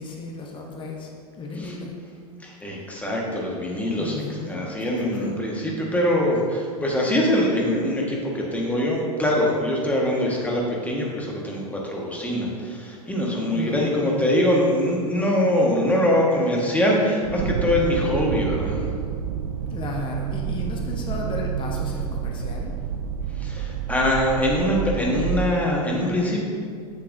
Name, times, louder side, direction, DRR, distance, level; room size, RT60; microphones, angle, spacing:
voice 1, 0.0-1.9 3.9-5.4 13.5-14.2 19.7-22.8, left 3 dB, 25° left, 0 dB, 0.9 m, -34 dB
voice 2, 2.4-18.8 23.4-26.4, left 1 dB, 5° left, -3 dB, 1.4 m, -23 dB
sound 1, 17.2-25.5, right 8 dB, 65° right, 0.4 m, -29 dB
7.5 x 7.2 x 2.6 m, 2.1 s
figure-of-eight pair, 90°, 20 cm